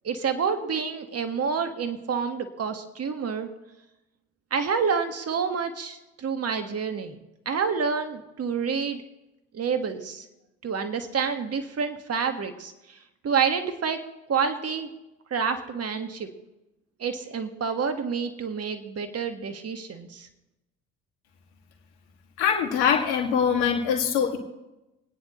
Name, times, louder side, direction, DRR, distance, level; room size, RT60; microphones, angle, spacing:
voice 1, 0.0-3.5 4.5-7.2 7.5-9.0 9.5-10.3 10.6-13.0 13.2-14.0 14.3-14.9 15.3-16.3 17.0-20.3, right 6 dB, 45° right, 7 dB, 1.9 m, -28 dB
voice 2, 22.4-24.4, left 7 dB, 85° left, 3 dB, 2.3 m, -23 dB
28.0 x 9.8 x 3.2 m, 0.98 s
hypercardioid pair, 65°, 34 cm